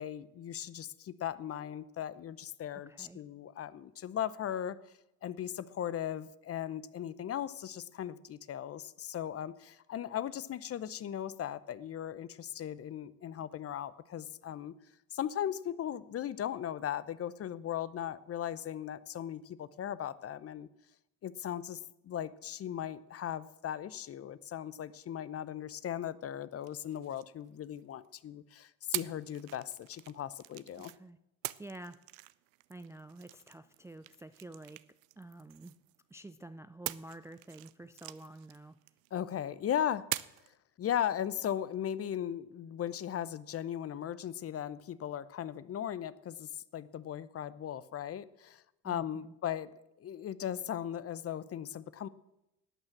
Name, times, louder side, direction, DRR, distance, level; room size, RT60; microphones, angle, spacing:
voice 1, 0.0-14.7 15.1-20.7 21.2-30.9 39.1-40.1 40.8-52.1, left 10 dB, 35° left, 17 dB, 0.7 m, -38 dB
voice 2, 2.9-3.2 30.8-31.2 31.6-32.0 32.7-34.8 35.2-35.8 36.1-38.8 48.8-49.3, right 2 dB, 5° right, 12 dB, 0.4 m, -49 dB
sound 1, 26.6-28.1 28.9-31.0 31.4-36.1 36.9-39.3 40.1-40.5, right 19 dB, 85° right, 0.5 m, -44 dB
12.0 x 8.8 x 7.5 m, 0.89 s
hypercardioid pair, 75°, 39 cm